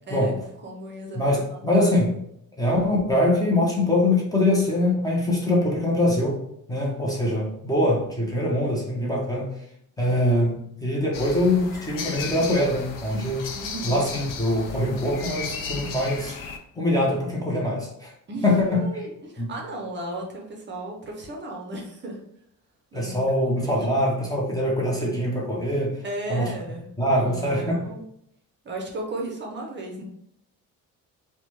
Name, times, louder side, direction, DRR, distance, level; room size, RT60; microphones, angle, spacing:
voice 1, 0.6-1.6 13.5-14.0 18.3-22.2 22.9-23.2 23.4-24.0 26.0-28.0 28.6-30.0, right 1 dB, 35° right, 0 dB, 0.6 m, -35 dB
voice 2, 1.1-2.2 2.6-6.4 6.7-9.5 10.0-13.5 13.8-16.4 16.8-18.1 18.4-19.0 19.4-19.5 22.9-26.0 26.3-26.5 27.0-27.8, left 1 dB, 10° left, -3 dB, 0.6 m, -23 dB
sound 1, 11.1-16.6, left 5 dB, 70° left, 0.5 m, -35 dB
3.2 x 2.1 x 3.0 m, 0.74 s
cardioid pair, 135°, 34 cm